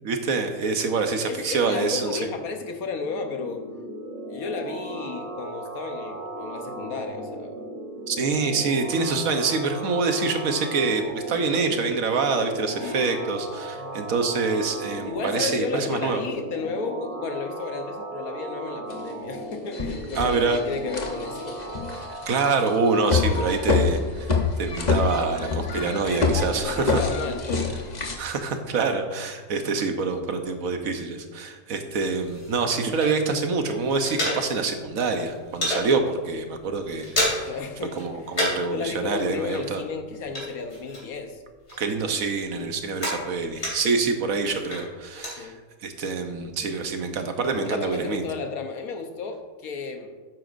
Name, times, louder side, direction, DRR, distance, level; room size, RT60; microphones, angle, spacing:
voice 1, 0.0-2.3 8.1-16.2 20.1-20.6 22.0-27.0 28.2-37.5 38.0-39.8 41.8-45.5 45.8-48.2, right 4 dB, 70° right, 6 dB, 1.3 m, -26 dB
voice 2, 1.3-3.6 4.3-7.5 8.0-8.1 12.8-13.1 13.7-14.0 15.0-21.6 26.6-27.8 37.5-38.0 38.3-38.4 38.7-41.4 45.4-45.6 47.6-50.1, left 4 dB, 80° left, 5 dB, 1.4 m, -33 dB
sound 1, 3.0-22.9, right 1 dB, 20° right, 1.6 m, -36 dB
sound 2, 18.9-19.0 19.5-28.1, left 4 dB, 35° left, 1.0 m, -26 dB
sound 3, 32.0-33.5 33.7-34.9 35.1-35.9 36.3-36.5 36.7-37.6 37.9-38.8 39.0-41.3 41.7-44.0 44.5-45.4, left 1 dB, 50° left, 3.3 m, -30 dB
12.5 x 9.1 x 2.6 m, 1.4 s
omnidirectional pair, 1.5 m